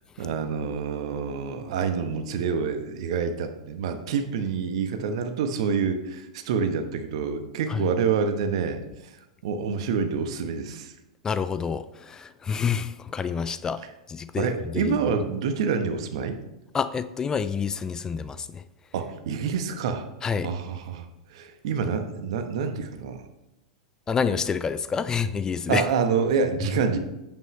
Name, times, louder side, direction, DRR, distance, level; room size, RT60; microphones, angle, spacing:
voice 1, 0.2-8.8 9.4-10.9 14.4-16.4 18.9-20.0 20.4-21.0 21.3-23.2 25.7-27.0, right 6 dB, 60° right, 1.1 m, -27 dB
voice 2, 11.2-13.8 14.1-15.0 16.7-18.6 20.2-20.5 24.1-25.8, left 6 dB, 20° left, 0.4 m, -28 dB
9.0 x 8.2 x 3.2 m
figure-of-eight pair, 95°, 3 cm